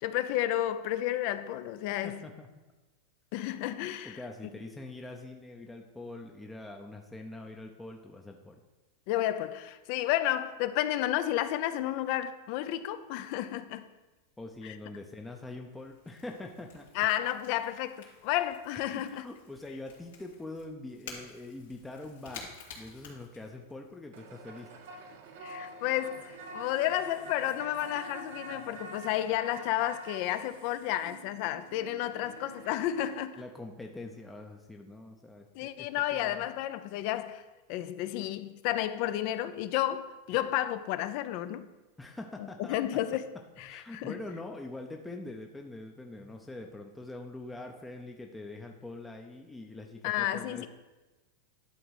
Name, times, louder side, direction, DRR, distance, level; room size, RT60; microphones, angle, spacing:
voice 1, 0.0-2.2 3.3-4.2 9.1-13.9 17.0-19.3 25.4-33.4 35.5-37.4 37.7-41.7 42.7-43.2 43.6-44.1 50.0-50.7, left 13 dB, 50° left, 0.6 m, -31 dB
voice 2, 2.0-2.5 4.0-8.6 14.4-17.1 18.9-24.7 33.4-36.5 42.0-43.0 43.6-50.7, left 2 dB, 5° left, 0.6 m, -44 dB
Crackle / Crack, 14.8-23.9, left 5 dB, 85° left, 2.7 m, -52 dB
sound 1, 24.1-33.2, right 2 dB, 70° right, 1.2 m, -46 dB
11.0 x 3.9 x 6.3 m
supercardioid pair, 140°, 0 cm